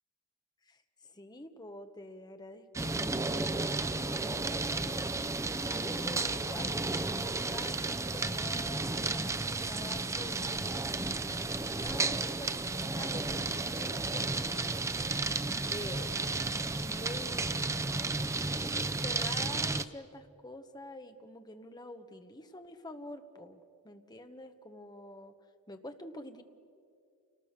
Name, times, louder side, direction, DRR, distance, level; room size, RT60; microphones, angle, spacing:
voice 1, 0.7-15.0 15.7-16.3 16.7-18.0 18.9-25.3 25.7-26.4, left 1 dB, 20° left, 7 dB, 1.1 m, -47 dB
sound 1, 2.7-19.9, right 3 dB, 15° right, 0.5 m, -33 dB
28.5 x 19.0 x 6.7 m, 2.4 s
head